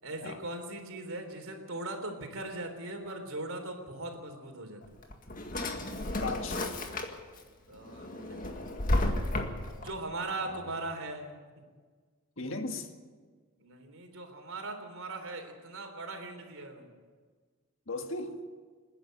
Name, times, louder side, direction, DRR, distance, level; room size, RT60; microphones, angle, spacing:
voice 1, 0.0-4.8 7.7-8.6 9.8-11.4 13.6-16.9, right 2 dB, 70° right, 5 dB, 3.5 m, -39 dB
Drawer open or close, 4.8-7.4 7.8-9.9, left 1 dB, 40° left, 1.9 m, -32 dB
voice 2, 6.2-6.6 10.4-10.7 12.4-12.9 17.9-18.4, left 2 dB, 60° left, 5 dB, 1.9 m, -37 dB
27.5 x 10.5 x 9.3 m, 1.5 s
head